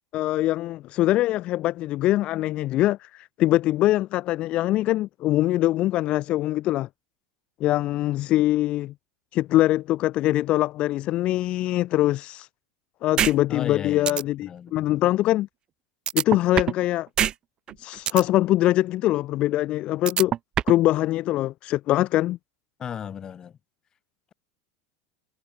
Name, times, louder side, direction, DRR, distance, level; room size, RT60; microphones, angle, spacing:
voice 1, 0.1-6.9 7.6-8.9 9.3-12.5 13.0-15.5 16.1-17.1 17.8-20.3 20.7-22.4, left 15 dB, 45° left, 0.7 m, -23 dB
sound 1, 13.2-13.3 13.7-13.8 14.1-14.2 16.1-16.8 17.2-17.3 17.7-18.2 20.1-20.8, right 10 dB, 35° right, 1.3 m, -23 dB
voice 2, 13.5-14.7 22.8-23.6, left 8 dB, 30° left, 6.6 m, -35 dB
supercardioid pair, 120°, 3 cm